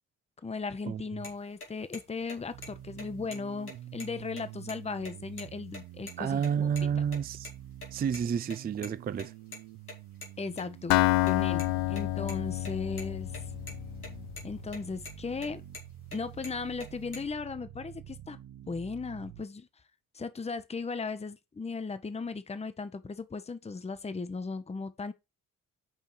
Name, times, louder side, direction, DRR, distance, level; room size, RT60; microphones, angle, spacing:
voice 1, 0.4-6.4 10.4-11.0 11.2-13.3 14.4-15.6 16.1-18.4 18.7-19.7 20.1-25.1, left 4 dB, 15° left, 0.9 m, -37 dB
sound 1, 1.2-1.3 1.6-1.7 1.9-2.0 2.3-2.7 3.0-3.1 3.3-3.4 3.7-4.7 5.0-5.1 5.4-5.5 5.7-6.1 6.4-6.9 7.1-8.2 8.5-11.0 11.3-13.0 13.3-13.4 13.7-14.1 14.4-14.8 15.1-16.2 16.4-17.2, left 2 dB, 90° left, 2.3 m, -44 dB
sound 2, 2.5-19.5, right 13 dB, 50° right, 0.8 m, -47 dB
voice 2, 6.2-7.5 7.9-9.3, right 7 dB, 20° right, 0.5 m, -30 dB
Acoustic guitar, 10.9-14.7, left 19 dB, 55° left, 0.6 m, -29 dB
7.5 x 5.3 x 4.6 m
figure-of-eight pair, 45°, 43 cm